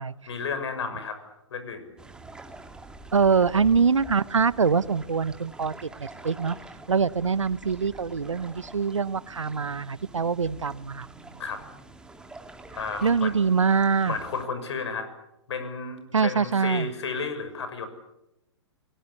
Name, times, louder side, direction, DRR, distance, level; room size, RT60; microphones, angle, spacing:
voice 1, 0.3-1.9 11.4-11.6 12.7-13.3 14.1-15.1 15.5-17.9, left 5 dB, 65° left, 9 dB, 6.5 m, -32 dB
sound 1, 2.0-14.5, right 2 dB, 5° right, 2.2 m, -46 dB
voice 2, 3.1-6.6 6.9-11.1 13.0-14.2 16.1-16.9, right 5 dB, 85° right, 19 dB, 1.0 m, -24 dB
30.0 x 18.5 x 8.4 m, 0.89 s
hypercardioid pair, 120°, 15 cm